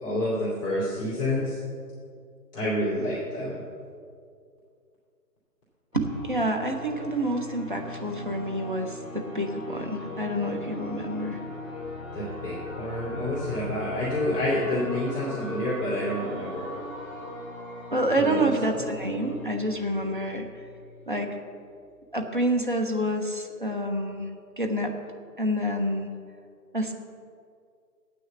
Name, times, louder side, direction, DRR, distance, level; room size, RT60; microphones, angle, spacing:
voice 1, 0.0-1.6 2.5-3.6 12.1-16.8 18.2-18.5, left 1 dB, 20° left, -9 dB, 2.2 m, -28 dB
sound 1, 5.9-21.3, left 1 dB, 5° right, 1.8 m, -39 dB
voice 2, 5.9-11.4 17.9-20.5 21.1-21.3 22.1-24.3 24.6-24.9 25.4-26.1 26.7-26.9, right 1 dB, 35° right, 3 dB, 0.7 m, -28 dB
8.4 x 6.6 x 7.9 m, 2.2 s
hypercardioid pair, 175°, 47 cm